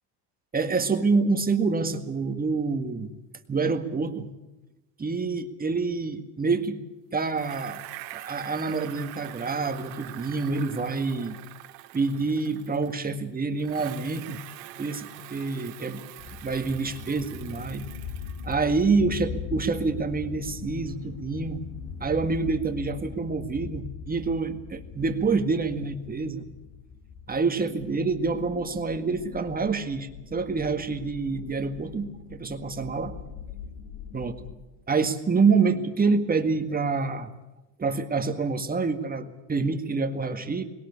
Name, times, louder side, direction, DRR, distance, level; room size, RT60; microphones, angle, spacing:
voice 1, 0.5-3.1 3.5-4.3 5.0-6.8 7.1-7.8 8.1-11.4 11.9-14.4 14.8-16.0 16.4-17.9 18.4-21.7 22.0-26.5 27.3-33.1 34.1-34.4 34.9-37.3 37.8-40.6, right 4 dB, 20° right, 7 dB, 1.9 m, -27 dB
Bicycle, 7.3-13.2 13.6-18.8, right 15 dB, 85° right, 2.1 m, -44 dB
sound 1, 16.2-34.6, left 6 dB, 45° left, 2.5 m, -41 dB
21.0 x 18.0 x 8.4 m, 1.0 s
supercardioid pair, 110°, 48 cm